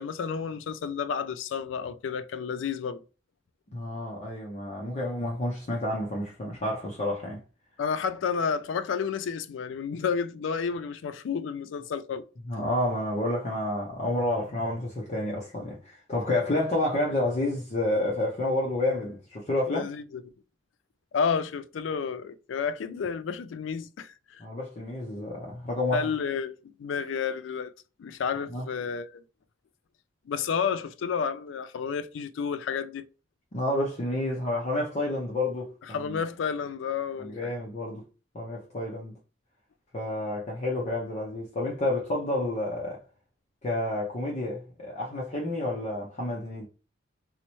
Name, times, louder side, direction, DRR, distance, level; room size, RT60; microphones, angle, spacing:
voice 1, 0.0-3.0 7.8-12.2 19.7-20.2 21.1-24.4 25.9-27.7 28.0-29.2 30.3-33.1 35.9-37.5, left 6 dB, 80° left, 0.3 m, -31 dB
voice 2, 3.7-7.4 12.5-19.9 24.4-26.1 28.5-28.7 33.5-36.2 37.2-38.0 38.3-39.2 39.9-43.0 43.6-46.7, left 1 dB, 35° left, 0.6 m, -30 dB
4.1 x 2.0 x 2.9 m
head